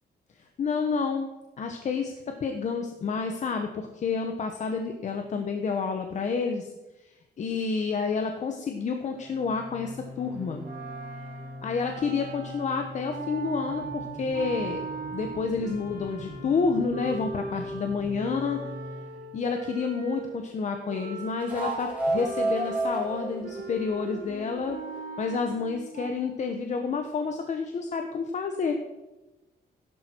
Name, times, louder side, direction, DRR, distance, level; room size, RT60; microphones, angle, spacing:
voice 1, 0.4-1.3 1.6-6.7 7.0-10.7 11.6-14.8 15.1-18.7 19.3-24.8 25.2-28.8, left 5 dB, 45° left, 5 dB, 1.2 m, -29 dB
sound 1, 9.0-19.2 21.4-25.1, right 1 dB, 10° right, 6.2 m, -36 dB
sound 2, 10.6-20.5 20.9-26.1, right 3 dB, 60° right, 4.5 m, -40 dB
16.5 x 11.5 x 4.7 m, 1.1 s
wide cardioid pair, 180°, 17 cm